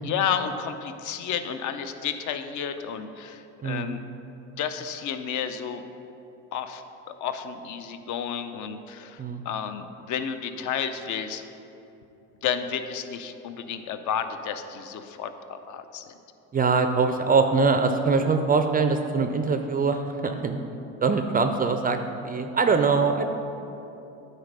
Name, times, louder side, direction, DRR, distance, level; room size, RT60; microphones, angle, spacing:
voice 1, 0.0-4.0 4.6-5.8 6.5-11.4 12.4-16.1, left 8 dB, 50° left, 9 dB, 0.6 m, -31 dB
voice 2, 3.6-3.9 9.2-9.4 16.5-20.6 21.0-22.0 22.2-23.3, right 4 dB, 25° right, 7 dB, 0.4 m, -23 dB
9.4 x 4.2 x 5.4 m, 2.9 s
supercardioid pair, 85°, 39 cm